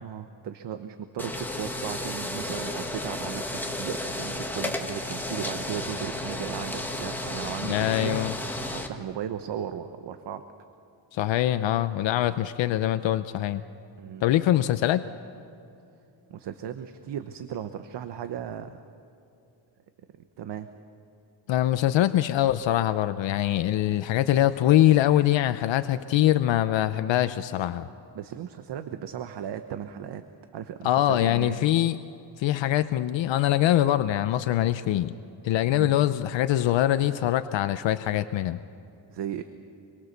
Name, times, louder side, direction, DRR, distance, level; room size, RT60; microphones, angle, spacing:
voice 1, 0.0-8.2 8.7-10.4 14.0-14.2 16.3-18.8 20.4-20.7 28.1-30.2 30.5-31.6 35.7-35.9 39.1-39.4, right 9 dB, 65° right, 8 dB, 1.1 m, -36 dB
sound 1, 1.2-8.9, left 1 dB, 5° left, 1.7 m, -33 dB
voice 2, 7.6-8.3 11.1-13.6 14.2-15.0 21.5-27.9 30.8-32.0 32.4-35.1 35.4-38.6, left 13 dB, 75° left, 10 dB, 0.8 m, -23 dB
26.0 x 23.0 x 6.8 m, 2.7 s
cardioid pair, 150°, 45 cm